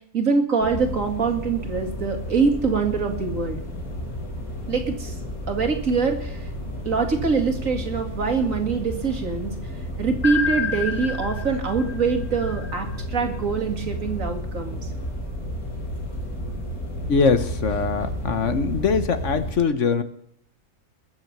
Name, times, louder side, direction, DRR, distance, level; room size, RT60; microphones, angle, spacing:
voice 1, 0.1-3.6 4.7-5.2 5.5-6.5 6.8-9.5 10.0-14.9, right 5 dB, 70° right, 5 dB, 2.6 m, -24 dB
sound 1, 0.6-19.5, equal, 90° left, 3.6 m, -32 dB
sound 2, 10.2-13.2, left 6 dB, 40° left, 1.2 m, -29 dB
voice 2, 17.1-20.0, left 5 dB, 60° left, 11 dB, 1.4 m, -22 dB
21.0 x 7.5 x 6.8 m, 0.67 s
omnidirectional pair, 1.5 m